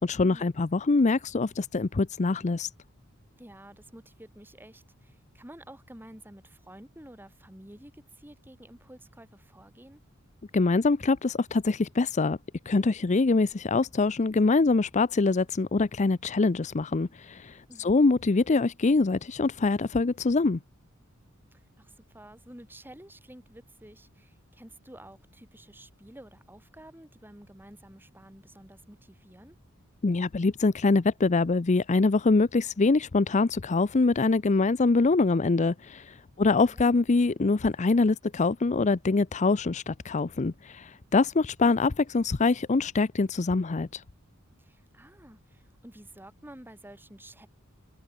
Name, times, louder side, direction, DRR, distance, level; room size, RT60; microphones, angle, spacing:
voice 1, 0.0-2.7 10.5-12.4 12.7-20.6 30.0-44.0, left 3 dB, 35° left, 0.5 m, -24 dB
voice 2, 3.4-10.0 17.7-18.0 21.5-29.6 36.4-36.8 44.6-47.5, right 1 dB, 10° right, 2.9 m, -50 dB
head